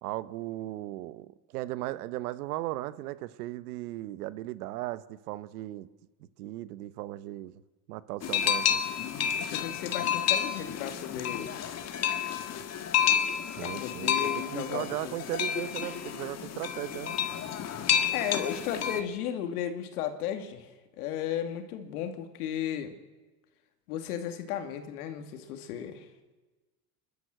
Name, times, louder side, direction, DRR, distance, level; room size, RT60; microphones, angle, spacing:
voice 1, 0.0-5.9 6.4-7.5 7.9-8.8 13.6-17.1, right 16 dB, 90° right, 16 dB, 1.0 m, -37 dB
sound 1, 8.2-19.0, left 8 dB, 35° left, 1.8 m, -30 dB
voice 2, 9.4-11.5 13.6-15.2 18.1-20.7 21.0-22.9 23.9-26.1, left 9 dB, 90° left, 6 dB, 2.6 m, -35 dB
28.5 x 12.5 x 7.9 m, 1.2 s
supercardioid pair, 125°, 44 cm